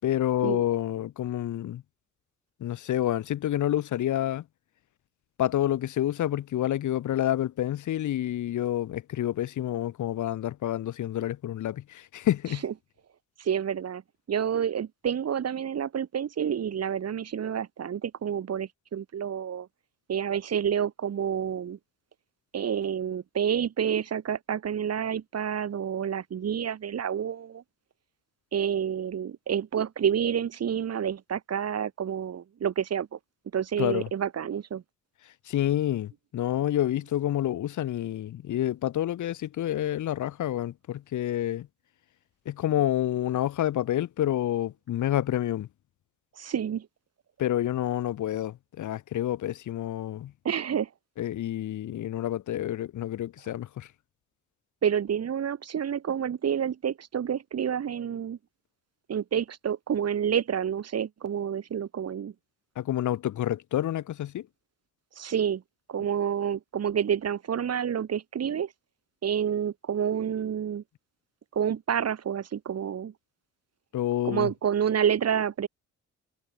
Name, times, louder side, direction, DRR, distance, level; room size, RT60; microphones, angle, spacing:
voice 1, 0.0-1.8 2.6-4.4 5.4-12.6 33.8-34.1 35.5-41.7 42.5-45.7 47.4-50.3 51.2-53.9 62.8-64.5 73.9-74.5, left 12 dB, 75° left, 5.8 m, -28 dB
voice 2, 13.4-14.0 14.3-19.7 20.1-21.8 22.5-27.6 28.5-33.2 33.5-34.8 46.4-46.9 50.4-50.9 54.8-58.4 59.1-62.3 65.2-65.6 65.9-68.7 69.2-70.8 71.5-73.1 74.2-75.7, right 8 dB, 55° right, 6.3 m, -29 dB
cardioid pair, 90°, 30 cm